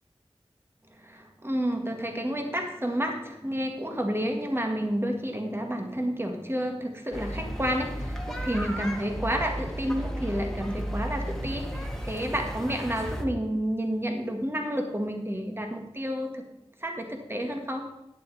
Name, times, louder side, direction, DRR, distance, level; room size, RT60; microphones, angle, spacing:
voice 1, 1.0-16.5 16.8-17.8, equal, 25° right, 3 dB, 1.9 m, -30 dB
sound 1, 7.1-13.3, equal, 5° left, 1.8 m, -34 dB
11.0 x 9.3 x 4.3 m, 0.91 s
wide cardioid pair, 40°, 10 cm